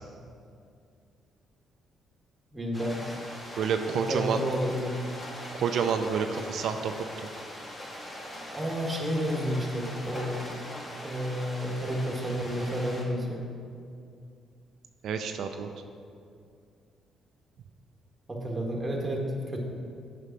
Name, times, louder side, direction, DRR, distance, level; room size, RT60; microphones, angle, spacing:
voice 1, 2.5-3.2 3.9-5.0 8.3-10.4 10.9-13.4 18.3-19.6, equal, 20° right, -1 dB, 1.6 m, -31 dB
sound 1, 2.7-13.0, left 1 dB, 25° left, 1.5 m, -41 dB
voice 2, 3.6-4.4 5.5-6.9 15.0-15.7, right 6 dB, 70° right, 6 dB, 0.4 m, -28 dB
8.1 x 5.0 x 5.8 m, 2.4 s
cardioid pair, 90°, 0 cm